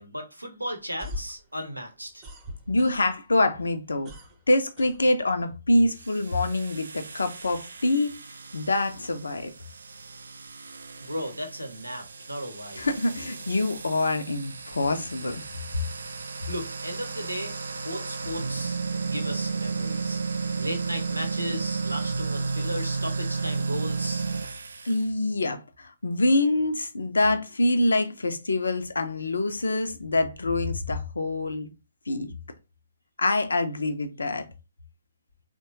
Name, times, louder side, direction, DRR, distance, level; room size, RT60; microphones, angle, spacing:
voice 1, 0.0-2.2 11.0-12.9 16.5-24.3, equal, 90° right, 0.7 m, -36 dB
sound 1, 0.8-3.3 3.6-5.6, left 2 dB, 20° right, 0.7 m, -41 dB
voice 2, 2.7-4.1 4.5-8.1 8.5-9.5 12.8-15.4 24.8-31.7 32.1-32.3 33.2-34.4, left 2 dB, 70° left, 0.5 m, -25 dB
sound 2, 5.9-25.0, right 4 dB, 65° right, 0.3 m, -33 dB
3.0 x 2.2 x 2.9 m
figure-of-eight pair, 130°, 0 cm